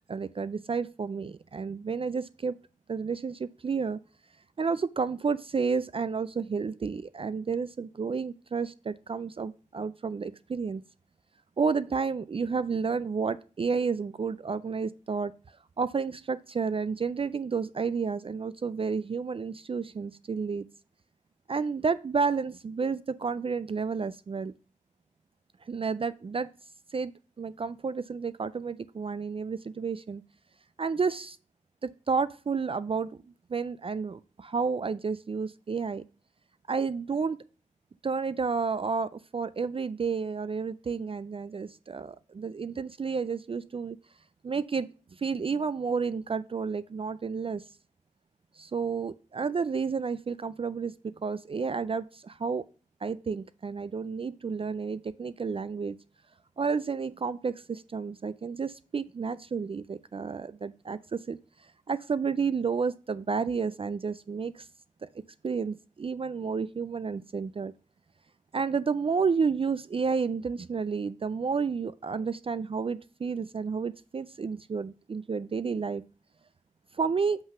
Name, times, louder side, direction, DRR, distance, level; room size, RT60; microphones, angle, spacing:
voice 1, 0.1-2.5 2.9-4.0 4.6-10.8 11.6-15.3 15.8-20.7 21.5-24.5 25.6-26.5 26.9-27.1 27.4-30.2 30.8-31.4 31.8-33.2 33.5-36.0 36.7-37.4 38.0-44.0 44.4-47.6 48.6-52.6 53.0-56.0 56.6-64.7 65.0-65.1 65.4-67.7 68.5-76.0 76.9-77.4, right 5 dB, 45° right, 15 dB, 0.4 m, -31 dB
5.8 x 5.5 x 5.8 m, 0.37 s
cardioid pair, 50°, 13 cm